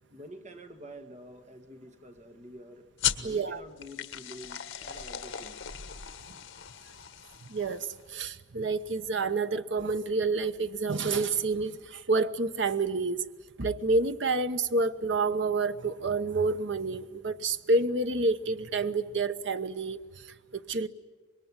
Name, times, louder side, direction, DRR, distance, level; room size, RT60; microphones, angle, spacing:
voice 1, 0.1-2.9 3.2-5.7, equal, 35° right, 1.7 m, -48 dB
sound 1, 3.0-8.1, left 10 dB, 75° left, 1.5 m, -37 dB
voice 2, 3.2-3.6 7.5-13.2 13.6-20.9, right 3 dB, 65° right, 1.0 m, -29 dB
25.5 x 22.0 x 9.7 m
head